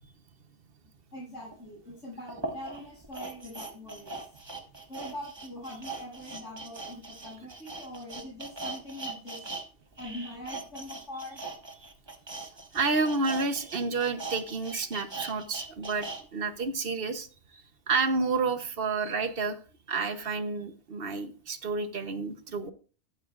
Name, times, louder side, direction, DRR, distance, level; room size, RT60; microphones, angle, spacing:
voice 1, 1.1-4.4 4.9-9.5 10.0-11.4, left 1 dB, 80° left, -7 dB, 7.8 m, -43 dB
sound 1, 1.5-1.6 2.3-9.6 9.9-16.2 16.6-16.7, right 3 dB, 20° right, 1.4 m, -40 dB
voice 2, 12.7-17.3 17.5-19.6 19.9-22.7, right 4 dB, 55° right, 10 dB, 1.1 m, -30 dB
14.0 x 12.0 x 2.4 m, 0.38 s
omnidirectional pair, 1.2 m